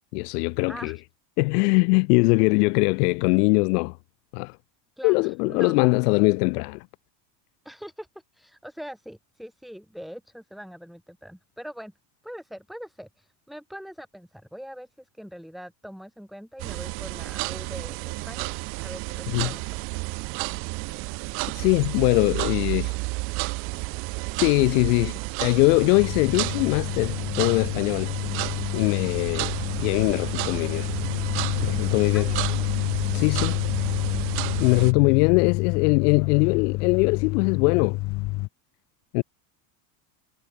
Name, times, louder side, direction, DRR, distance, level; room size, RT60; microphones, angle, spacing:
voice 1, 0.1-1.0 1.4-4.0 4.3-4.6 5.0-6.8 19.3-19.5 21.5-22.9 24.4-28.1 28.7-29.5 29.8-30.9 31.6-32.3 33.1-33.6 34.6-38.0 39.1-39.2, left 30 dB, 70° left, 0.6 m, -22 dB
voice 2, 0.7-1.0 5.0-5.9 7.6-8.1 8.3-11.9 12.2-19.8 32.1-32.6, equal, ahead, 1.5 m, -42 dB
sound 1, 16.6-34.9, right 28 dB, 30° right, 0.3 m, -31 dB
sound 2, 25.9-38.5, left 22 dB, 35° left, 0.8 m, -29 dB
cardioid pair, 175°, 49 cm